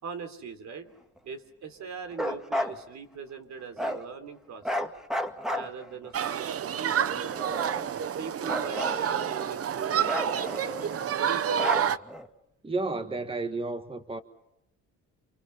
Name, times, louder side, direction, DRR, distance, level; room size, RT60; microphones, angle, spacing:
voice 1, 0.0-0.9 1.2-4.9 5.5-7.2 8.2-11.6, right 6 dB, 65° right, 3.4 m, -41 dB
Bark, 2.1-2.8 3.8-4.0 4.6-6.1 6.9-8.0 8.4-9.6 10.0-11.1 11.6-12.3, equal, ahead, 2.0 m, -33 dB
Human group actions, 6.1-12.0, right 9 dB, 50° right, 0.9 m, -29 dB
voice 2, 12.6-14.2, right 3 dB, 20° right, 1.5 m, -32 dB
29.5 x 27.0 x 5.7 m
cardioid pair, 90°, 30 cm